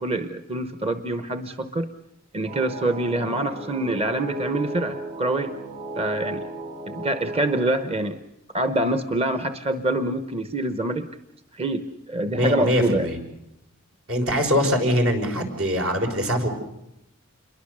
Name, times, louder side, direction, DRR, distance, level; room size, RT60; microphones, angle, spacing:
voice 1, 0.0-1.9 2.3-5.5 5.9-6.5 6.9-8.2 8.5-11.1 11.5-13.1, right 1 dB, 30° right, 9 dB, 0.8 m, -25 dB
sound 1, 2.5-7.6, right 1 dB, 45° right, 4.0 m, -35 dB
voice 2, 12.3-13.2 14.1-16.5, equal, 75° right, 4 dB, 5.4 m, -22 dB
28.0 x 22.5 x 6.7 m, 0.85 s
head